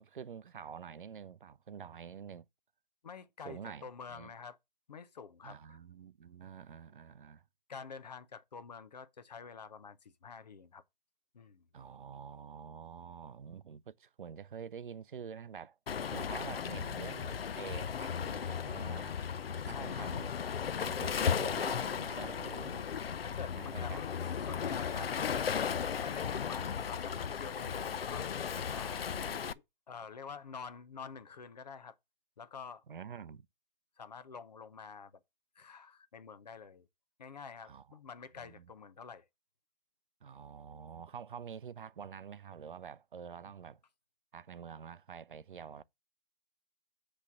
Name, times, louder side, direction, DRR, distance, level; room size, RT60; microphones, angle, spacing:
voice 1, 0.0-2.5 3.4-4.3 5.4-7.4 11.7-15.8 16.1-19.2 19.7-20.3 20.8-22.9 23.6-24.0 24.9-25.1 29.2-29.4 32.9-33.5 37.6-38.0 38.4-38.7 40.2-43.8 44.3-45.8, right 7 dB, 60° right, 0.5 m, -47 dB
voice 2, 3.0-4.6 4.9-5.8 7.7-10.8 11.3-11.7 19.7-20.1 23.2-24.1 24.5-25.3 26.0-28.3 28.7-29.0 29.9-32.0 32.4-32.8 34.0-35.1 35.6-36.8 37.2-39.2, left 6 dB, 45° left, 0.7 m, -48 dB
Waves surf, 15.9-29.5, left 7 dB, 80° left, 0.5 m, -36 dB
8.2 x 3.3 x 5.8 m
figure-of-eight pair, 160°, 29 cm